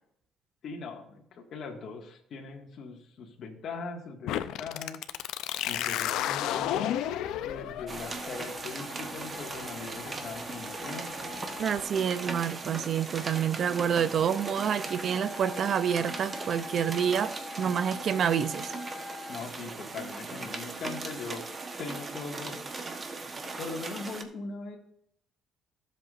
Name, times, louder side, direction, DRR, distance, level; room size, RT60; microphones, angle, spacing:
voice 1, 0.6-5.0 5.7-6.9 7.3-11.1 19.3-21.4 21.8-22.6 23.6-24.8, left 4 dB, 55° left, 2.0 m, -40 dB
sound 1, 4.3-11.8, left 11 dB, 85° left, 0.6 m, -34 dB
sound 2, 7.9-24.2, right 3 dB, 30° right, 1.2 m, -39 dB
voice 2, 11.6-18.7, right 8 dB, 50° right, 0.6 m, -28 dB
Wind instrument woodwind instrument, 14.1-19.4, left 4 dB, 15° left, 1.3 m, -44 dB
16.0 x 7.6 x 2.6 m
cardioid pair, 115°, 0 cm